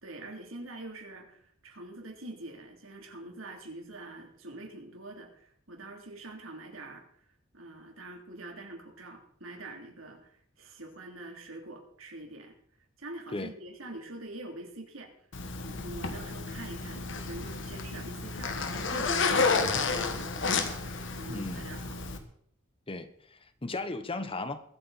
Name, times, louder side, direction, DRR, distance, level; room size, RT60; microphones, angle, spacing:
voice 1, 0.0-7.1 7.5-12.5 13.0-15.1 15.6-22.1, right 2 dB, 80° right, 3.2 m, -45 dB
Zipper (clothing), 15.3-22.2, left 4 dB, 65° left, 1.6 m, -31 dB
voice 2, 21.3-21.7 22.9-24.6, left 2 dB, 25° left, 1.0 m, -36 dB
22.0 x 8.5 x 4.2 m
head